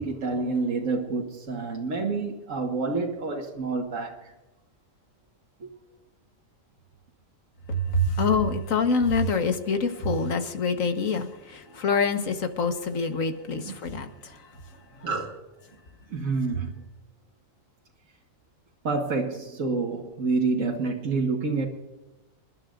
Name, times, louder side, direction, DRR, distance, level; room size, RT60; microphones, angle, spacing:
voice 1, 0.0-4.3 5.6-5.7 11.7-11.8 13.5-13.7 14.9-15.4 16.1-16.7 18.8-21.7, right 4 dB, 80° right, 1.8 m, -28 dB
voice 2, 7.7-15.1, left 3 dB, 90° left, 1.7 m, -26 dB
28.0 x 11.5 x 2.5 m
omnidirectional pair, 1.3 m